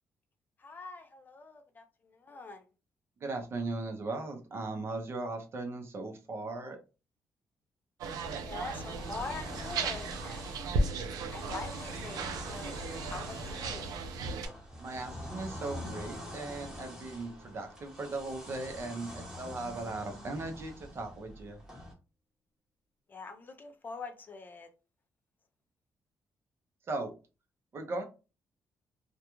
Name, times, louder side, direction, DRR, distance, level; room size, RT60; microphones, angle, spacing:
voice 1, 0.6-2.7 8.4-10.5 11.3-12.8 13.1-13.9 23.1-24.7, left 3 dB, 30° left, 6 dB, 0.4 m, -44 dB
voice 2, 3.2-6.8 14.8-21.6 26.9-27.1 27.7-28.0, right 2 dB, 40° right, 4 dB, 0.6 m, -38 dB
sound 1, 8.0-14.5, right 3 dB, 90° right, 0.4 m, -36 dB
sound 2, 8.5-21.9, left 1 dB, 10° right, 0.9 m, -46 dB
sound 3, 15.8-20.3, left 1 dB, 45° left, 1.0 m, -56 dB
2.3 x 2.2 x 2.9 m, 0.31 s
cardioid pair, 135°, 6 cm